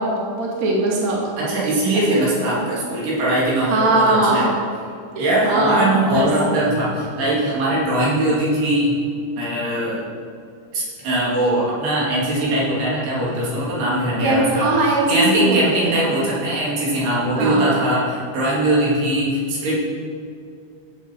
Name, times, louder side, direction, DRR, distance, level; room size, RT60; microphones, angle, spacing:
voice 1, 0.0-1.2 2.1-2.2 3.7-4.4 5.1-6.3 14.2-16.1 17.4-17.6, right 2 dB, 30° right, -3 dB, 1.7 m, -20 dB
voice 2, 1.4-4.5 5.2-9.0 9.4-10.0 10.7-19.7, right 1 dB, 80° right, -7 dB, 4.9 m, -21 dB
14.5 x 7.8 x 4.6 m, 2.5 s
omnidirectional pair, 4.6 m